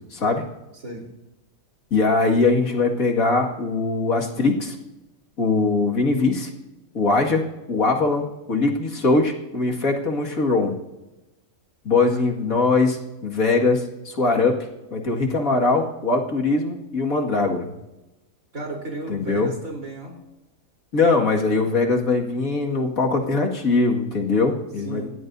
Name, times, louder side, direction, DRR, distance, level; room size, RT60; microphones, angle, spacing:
voice 1, 0.1-0.4 1.9-4.8 5.4-6.5 6.9-10.8 11.8-14.6 14.9-17.7 19.1-19.5 20.9-25.1, left 3 dB, 85° left, 1 dB, 2.5 m, -21 dB
voice 2, 18.5-20.2 24.8-25.1, right 2 dB, 80° right, 0 dB, 4.4 m, -34 dB
27.5 x 16.0 x 2.7 m, 1.0 s
omnidirectional pair, 1.4 m